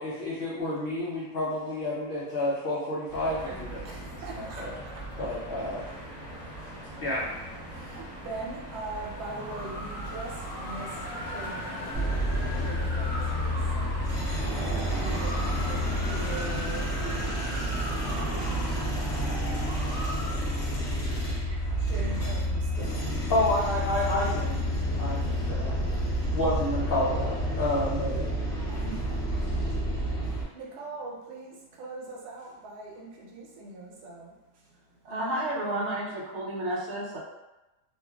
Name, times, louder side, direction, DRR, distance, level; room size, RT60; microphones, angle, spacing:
voice 1, 0.0-4.7 5.2-5.8 7.0-7.2 23.3-24.5 25.0-25.7 26.2-28.3, left 1 dB, 85° left, -7 dB, 0.5 m, -30 dB
sound 1, 3.1-20.3, equal, 30° left, 1.5 m, -39 dB
voice 2, 3.8-5.4 5.8-5.9 6.6-6.7 7.7-12.1 12.6-14.0 14.6-19.7 21.5-23.3 25.8-26.2 28.5-34.7, right 3 dB, 90° right, -2 dB, 1.2 m, -43 dB
sound 2, 9.3-18.0, left 1 dB, 70° left, 0.9 m, -44 dB
sound 3, 11.9-30.4, equal, 50° left, 1.2 m, -29 dB
voice 3, 35.0-37.2, right 1 dB, 60° right, -4 dB, 0.8 m, -31 dB
2.9 x 2.4 x 2.2 m, 1.0 s
omnidirectional pair, 1.6 m